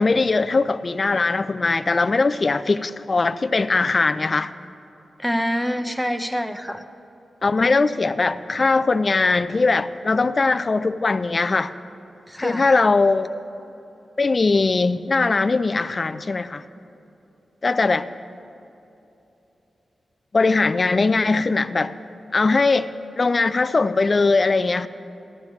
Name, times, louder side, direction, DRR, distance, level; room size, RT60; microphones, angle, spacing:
voice 1, 0.0-4.5 7.4-11.7 12.4-13.3 14.2-16.6 17.6-18.1 20.3-21.9 22.3-22.9 23.2-24.9, left 3 dB, 45° left, 11 dB, 0.3 m, -20 dB
voice 2, 5.2-6.8 12.3-12.8, equal, ahead, 8 dB, 0.6 m, -26 dB
14.0 x 13.0 x 3.1 m, 3.0 s
cardioid pair, 60°, 0 cm